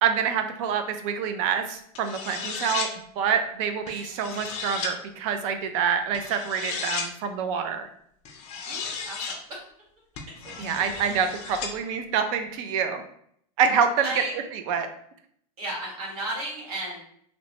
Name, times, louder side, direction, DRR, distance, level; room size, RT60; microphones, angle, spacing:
voice 1, 0.0-2.9 3.2-7.9 10.6-13.0 13.6-14.2 14.5-14.9, right 7 dB, 60° right, 7 dB, 0.5 m, -26 dB
sound 1, 1.9-2.9 3.9-4.9 6.1-7.1 8.3-9.4 10.2-11.7, left 5 dB, 35° left, 0.5 m, -34 dB
voice 2, 8.7-9.6 10.4-10.5 10.9-11.2 14.0-14.3 15.6-17.0, right 1 dB, 80° right, -4 dB, 1.5 m, -34 dB
2.9 x 2.1 x 2.9 m, 0.67 s
supercardioid pair, 145°, 19 cm